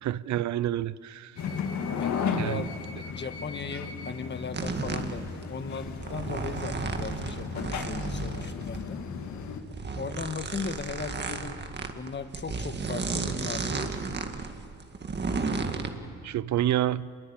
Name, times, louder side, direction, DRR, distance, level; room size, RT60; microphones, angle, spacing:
voice 1, 0.0-1.3 2.4-2.7 16.2-17.1, right 12 dB, 65° right, 0.7 m, -28 dB
sound 1, 1.4-9.6, left 6 dB, 65° left, 2.1 m, -35 dB
voice 2, 1.9-2.8 3.1-9.0 10.0-14.3, left 5 dB, 35° left, 1.7 m, -38 dB
sound 2, 4.5-15.9, right 4 dB, 35° right, 2.1 m, -33 dB
27.0 x 22.0 x 8.8 m
cardioid pair, 90°, 30 cm